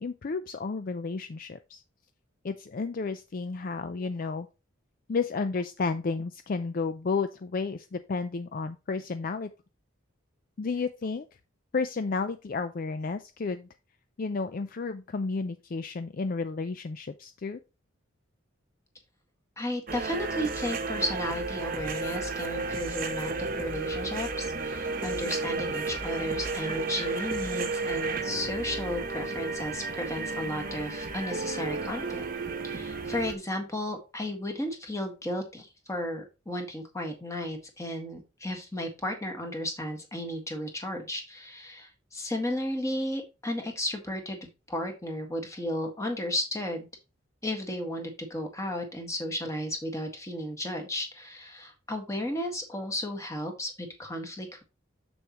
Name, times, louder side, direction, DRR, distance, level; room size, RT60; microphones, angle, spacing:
voice 1, 0.0-1.8 2.4-4.5 5.1-9.5 10.6-11.3 11.7-13.7 14.2-17.6, left 4 dB, 45° left, 10 dB, 0.4 m, -32 dB
voice 2, 19.6-32.3 32.6-44.4 44.7-46.9 47.4-54.6, left 1 dB, 15° left, 3 dB, 1.7 m, -34 dB
sound 1, 19.9-33.3, right 3 dB, 45° right, 1.0 m, -33 dB
7.0 x 6.9 x 3.0 m, 0.28 s
head